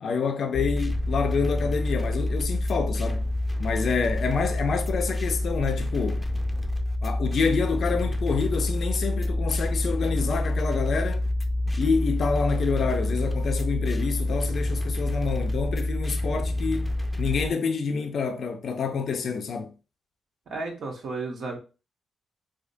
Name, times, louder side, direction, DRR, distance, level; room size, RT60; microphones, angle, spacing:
voice 1, 0.0-3.2 3.6-6.3 7.0-11.2 11.7-19.7, left 5 dB, 65° left, 0.5 m, -27 dB
sound 1, 0.5-17.5, left 1 dB, 10° left, 0.6 m, -27 dB
voice 2, 20.5-21.6, right 3 dB, 70° right, 1.2 m, -33 dB
5.0 x 2.1 x 2.6 m
cardioid pair, 65°, 0 cm